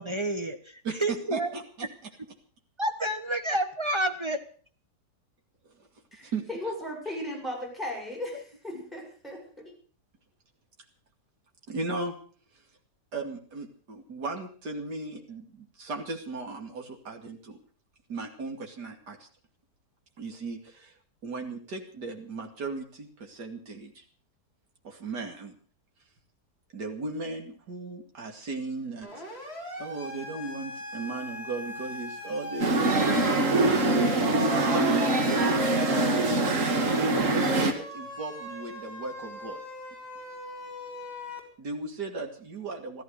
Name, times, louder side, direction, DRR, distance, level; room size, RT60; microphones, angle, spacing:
voice 1, 0.0-1.5 2.8-4.4, right 1 dB, 20° right, 7 dB, 1.2 m, -29 dB
voice 2, 0.8-1.9 6.2-6.4 11.7-12.1 13.1-17.6 18.1-19.3 20.2-20.9 21.2-24.0 24.8-25.6 26.7-29.2 29.8-33.9 34.2-36.7 36.9-39.6 41.6-43.0, right 3 dB, 75° right, 2 dB, 3.0 m, -37 dB
voice 3, 6.1-9.7, left 1 dB, ahead, -2 dB, 7.0 m, -37 dB
Siren, 29.0-41.4, left 1 dB, 35° left, 4.2 m, -39 dB
sound 1, 32.6-37.7, right 2 dB, 50° right, 2.2 m, -24 dB
15.0 x 13.5 x 6.6 m, 0.43 s
omnidirectional pair, 1.8 m